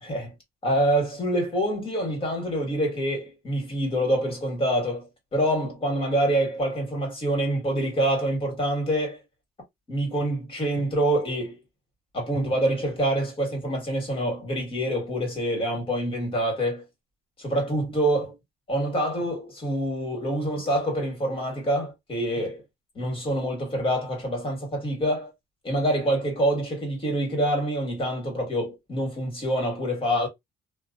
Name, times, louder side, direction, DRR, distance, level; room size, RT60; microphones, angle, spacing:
voice 1, 0.0-0.3 0.6-9.2 9.9-11.6 12.1-16.8 17.4-18.3 18.7-22.6 23.0-25.3 25.6-30.3, right 1 dB, 30° left, 1.8 m, -26 dB
2.9 x 2.2 x 2.5 m
cardioid pair, 110°, 17 cm